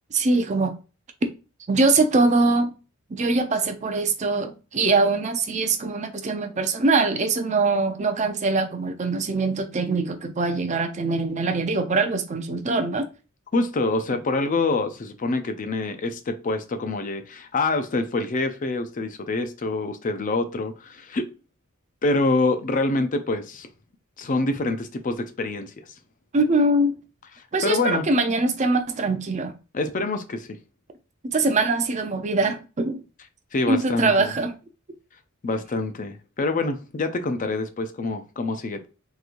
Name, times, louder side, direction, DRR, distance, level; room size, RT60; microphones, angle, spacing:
voice 1, 0.1-0.7 1.7-2.7 3.1-13.1 26.3-27.0 27.5-29.5 31.2-33.0 33.7-34.5, right 3 dB, 35° right, 0.4 m, -22 dB
voice 2, 13.5-21.3 22.0-23.7 24.2-25.8 27.6-28.0 29.7-30.6 33.5-34.3 35.4-38.9, left 2 dB, 40° left, 0.4 m, -26 dB
3.8 x 3.0 x 2.5 m
head